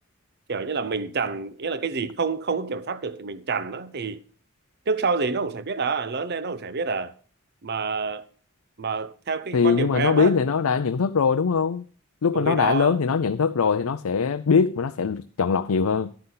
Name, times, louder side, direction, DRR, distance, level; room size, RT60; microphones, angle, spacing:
voice 1, 0.5-4.2 4.9-7.1 7.6-8.3 8.8-10.3 12.3-13.0, right 4 dB, 50° right, 0.7 m, -28 dB
voice 2, 9.5-11.8 12.2-16.1, left 5 dB, 80° left, 0.5 m, -22 dB
11.5 x 9.6 x 3.9 m
head